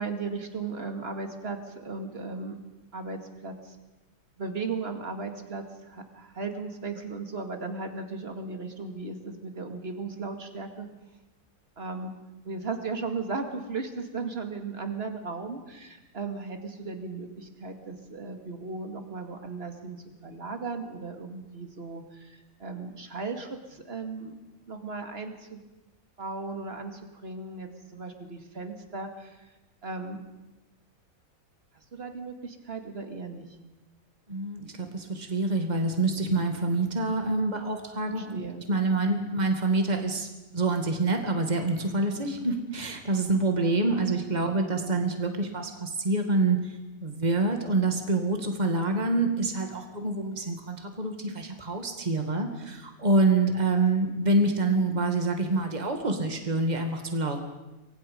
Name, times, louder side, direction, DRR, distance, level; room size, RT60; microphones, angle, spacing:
voice 1, 0.0-2.6 2.9-3.8 4.4-10.9 11.8-12.1 12.4-24.4 24.7-25.6 26.2-29.5 29.8-30.2 31.7-33.4 38.2-38.7, right 4 dB, 45° right, 5 dB, 2.6 m, -36 dB
voice 2, 34.3-40.3 40.5-46.8 47.0-57.4, right 2 dB, 30° right, 4 dB, 2.4 m, -26 dB
30.0 x 23.5 x 5.4 m, 1.0 s
omnidirectional pair, 1.5 m